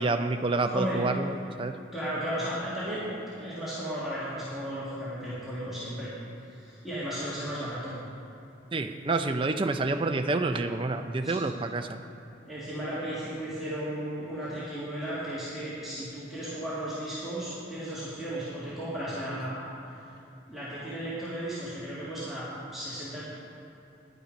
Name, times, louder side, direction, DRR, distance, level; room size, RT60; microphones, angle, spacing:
voice 1, 0.0-1.8 8.7-12.0, right 3 dB, 25° right, 6 dB, 0.4 m, -28 dB
voice 2, 0.7-1.1 1.9-6.1 6.5-8.0 11.2-11.6 12.4-19.6 20.5-23.2, right 1 dB, ahead, -11 dB, 1.8 m, -35 dB
10.0 x 9.7 x 5.2 m, 2.7 s
head